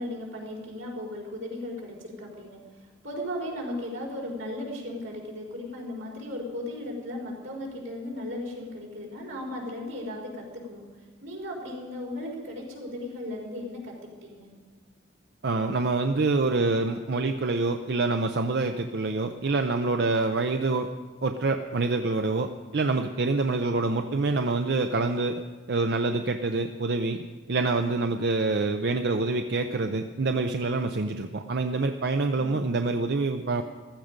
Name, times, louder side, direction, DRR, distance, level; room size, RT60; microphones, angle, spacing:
voice 1, 0.0-10.8 11.2-14.0 14.2-14.5 32.3-32.6, left 1 dB, 85° right, -2 dB, 4.3 m, -36 dB
voice 2, 15.4-20.9 21.2-25.4 25.7-33.6, right 3 dB, 55° right, 6 dB, 0.5 m, -26 dB
15.0 x 13.0 x 5.2 m, 1.4 s
head